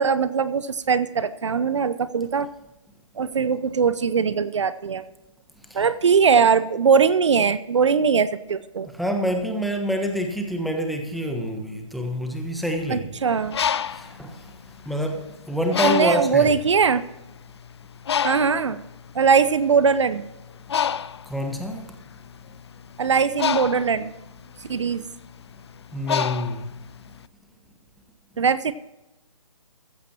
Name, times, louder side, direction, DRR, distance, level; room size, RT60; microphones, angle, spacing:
voice 1, 0.0-2.5 3.2-5.0 5.7-8.9 12.9-13.6 15.8-17.0 18.2-18.8 19.1-20.2 23.0-24.1 24.7-25.0 28.4-28.7, right 6 dB, 60° right, 15 dB, 0.7 m, -20 dB
voice 2, 9.0-13.1 13.9-14.3 14.9-16.6 21.3-21.8 25.9-26.6, equal, ahead, 2 dB, 1.2 m, -27 dB
Bird, 13.3-15.2 15.7-16.4 17.1-17.2 17.5-27.2, left 8 dB, 55° left, 0.5 m, -28 dB
15.0 x 13.5 x 2.9 m, 0.94 s
figure-of-eight pair, 140°, 17 cm